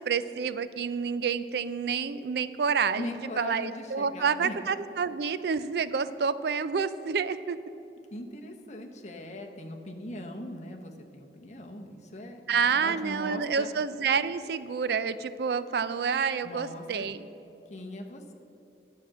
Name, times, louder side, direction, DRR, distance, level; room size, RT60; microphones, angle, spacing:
voice 1, 0.0-3.1 3.4-7.6 12.5-17.3, right 6 dB, 60° right, 14 dB, 0.4 m, -28 dB
voice 2, 3.0-4.6 8.1-13.7 16.4-17.1 17.7-18.3, left 1 dB, 40° left, 3 dB, 0.9 m, -40 dB
10.5 x 5.9 x 7.5 m, 2.9 s
head